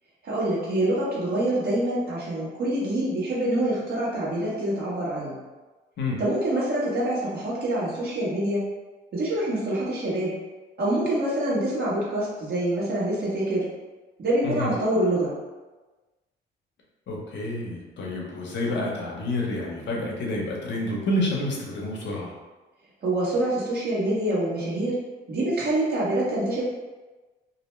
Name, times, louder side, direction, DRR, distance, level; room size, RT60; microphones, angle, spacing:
voice 1, 0.2-5.4 6.2-8.6 9.1-10.3 10.8-13.6 14.2-15.3 23.0-25.0 25.3-26.6, right 1 dB, 55° right, -7 dB, 1.1 m, -26 dB
voice 2, 17.1-22.3, left 1 dB, 65° left, -2 dB, 0.7 m, -29 dB
2.6 x 2.1 x 3.1 m, 1.2 s
cardioid pair, 90°, 20 cm